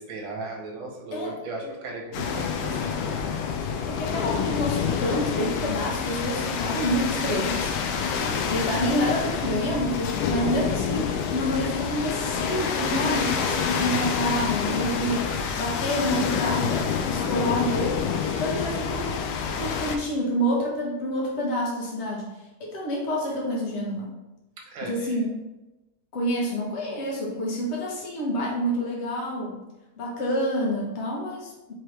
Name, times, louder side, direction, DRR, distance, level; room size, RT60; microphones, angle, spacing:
voice 1, 0.0-3.2 8.0-8.4 24.7-25.2, right 2 dB, 70° right, -1 dB, 1.6 m, -36 dB
sound 1, 2.1-20.0, left 6 dB, 90° left, 1.5 m, -27 dB
voice 2, 3.9-7.7 8.5-17.9 18.4-19.1 19.6-22.3 22.6-24.1 24.8-25.3 26.1-29.6 30.0-31.7, equal, 45° left, -3 dB, 1.0 m, -28 dB
4.4 x 3.1 x 3.2 m, 1.0 s
omnidirectional pair, 2.3 m